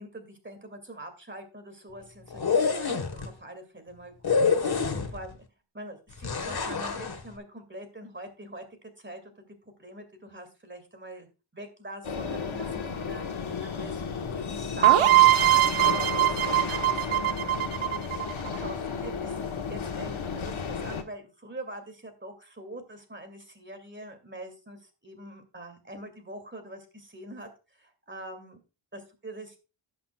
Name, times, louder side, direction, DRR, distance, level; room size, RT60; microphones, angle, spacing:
voice 1, 0.0-5.4 5.7-8.7 9.0-9.5 9.8-11.3 11.5-14.0 14.5-17.4 18.4-19.3 19.7-28.6 28.9-29.6, right 1 dB, 25° right, 6 dB, 2.2 m, -44 dB
sound 1, 2.3-3.3 4.2-5.3 6.2-7.2, left 5 dB, 50° left, 1.3 m, -26 dB
sound 2, 12.0-21.0, left 5 dB, 75° left, 1.3 m, -33 dB
sound 3, 14.8-18.6, right 15 dB, 80° right, 0.8 m, -21 dB
17.5 x 6.1 x 2.2 m, 0.32 s
wide cardioid pair, 110°, 48 cm